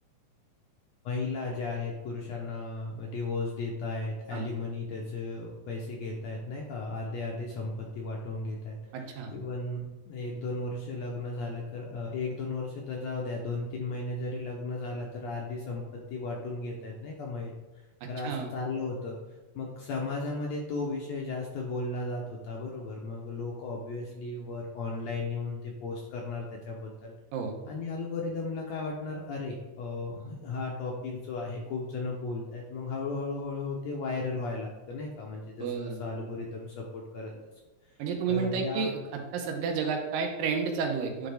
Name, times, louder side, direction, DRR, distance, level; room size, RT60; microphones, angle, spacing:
voice 1, 1.0-19.1 19.5-27.1 27.7-37.4 38.3-38.9, left 3 dB, 75° left, -1 dB, 1.6 m, -35 dB
voice 2, 8.9-9.3 18.2-18.5 27.3-27.6 35.6-36.0 38.0-39.0 39.3-41.3, right 5 dB, 90° right, 2 dB, 2.7 m, -31 dB
9.5 x 3.7 x 3.4 m, 1.1 s
omnidirectional pair, 3.9 m